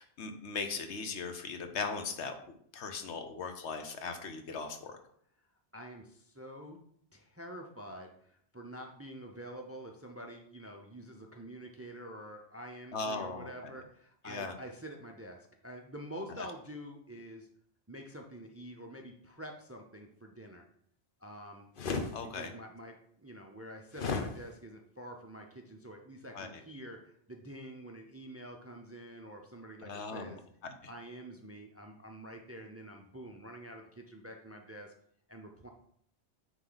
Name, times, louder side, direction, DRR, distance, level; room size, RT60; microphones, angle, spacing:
voice 1, 0.0-2.3 2.7-4.9 12.9-13.5 14.2-14.5 22.1-22.5 26.3-26.5 29.8-30.3 30.6-30.7, left 4 dB, 80° left, 6 dB, 1.2 m, -38 dB
voice 2, 5.7-6.8 7.1-17.5 17.9-20.6 21.2-21.7 22.2-30.4 30.9-34.9 35.3-35.7, equal, 20° right, 3 dB, 0.5 m, -47 dB
sound 1, 21.8-22.1 23.9-24.3, left 4 dB, 55° left, 0.9 m, -33 dB
9.1 x 3.2 x 3.9 m, 0.66 s
omnidirectional pair, 1.1 m